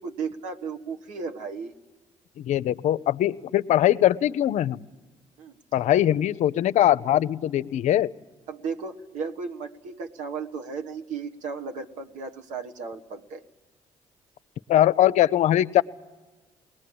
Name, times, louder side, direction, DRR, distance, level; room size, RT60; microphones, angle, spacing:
voice 1, 0.0-1.7 5.4-5.6 8.5-13.4, right 5 dB, 75° right, 5 dB, 1.5 m, -35 dB
voice 2, 2.4-4.8 5.7-8.1 14.7-15.8, left 12 dB, 70° left, 14 dB, 0.6 m, -21 dB
21.0 x 19.0 x 8.6 m, 1.3 s
supercardioid pair, 70°, 13 cm